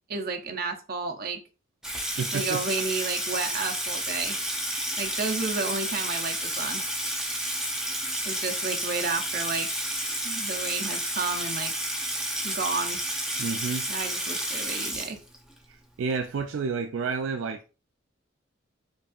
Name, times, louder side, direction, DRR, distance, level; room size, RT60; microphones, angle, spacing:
voice 1, 0.1-1.4 2.3-4.4 5.0-6.8 8.2-9.7 10.2-11.7 12.4-13.0 13.9-15.2, right 4 dB, 50° right, 0.7 m, -31 dB
Water tap faucet / Sink (filling or washing), 1.8-15.6, right 1 dB, 5° right, 0.6 m, -31 dB
voice 2, 2.2-2.6 13.4-13.9 15.7-17.7, right 5 dB, 80° right, 0.4 m, -30 dB
5.2 x 2.5 x 2.4 m
head